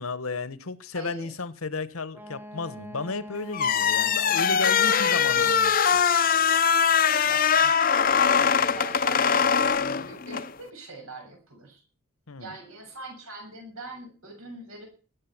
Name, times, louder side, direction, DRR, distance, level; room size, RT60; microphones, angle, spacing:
voice 1, 0.0-6.0 12.3-12.5, left 4 dB, 75° left, 1.0 m, -33 dB
voice 2, 0.9-1.3 4.8-5.6 7.1-11.8 12.4-14.9, right 2 dB, 80° right, 7.1 m, -42 dB
Wind instrument woodwind instrument, 2.1-5.9, equal, 10° right, 0.9 m, -44 dB
sound 1, 3.5-10.5, left 7 dB, 40° left, 0.6 m, -22 dB
20.5 x 8.5 x 6.0 m
head